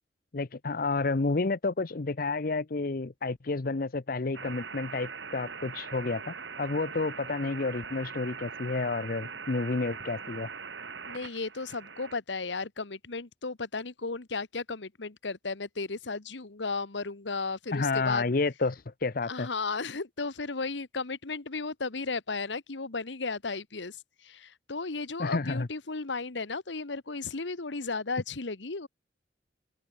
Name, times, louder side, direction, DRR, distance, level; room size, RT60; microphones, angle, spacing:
voice 1, 0.3-10.5 17.7-19.5 25.2-25.7, left 3 dB, 50° left, 0.7 m, -30 dB
sound 1, 4.3-12.1, right 5 dB, 90° right, 3.0 m, -41 dB
voice 2, 11.1-18.3 19.2-28.9, left 4 dB, 85° left, 1.3 m, -35 dB
open air
head